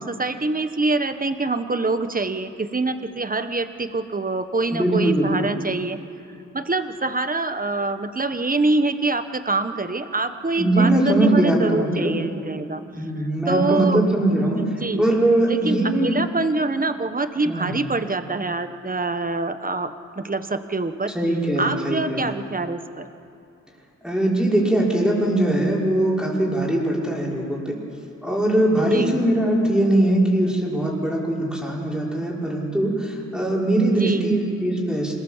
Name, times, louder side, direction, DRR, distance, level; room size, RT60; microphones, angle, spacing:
voice 1, 0.0-6.0 6.5-12.8 13.2-14.0 14.3-15.0 15.5-21.1 21.6-23.1 28.8-29.2 33.9-34.3, right 3 dB, 30° right, 9 dB, 1.2 m, -25 dB
voice 2, 4.7-5.5 10.6-12.1 13.0-14.6 15.0-16.2 17.4-17.8 21.1-22.3 24.0-27.8 28.2-35.1, right 1 dB, 5° right, -4 dB, 5.5 m, -21 dB
27.0 x 20.0 x 7.5 m, 2.7 s
wide cardioid pair, 90°, 30 cm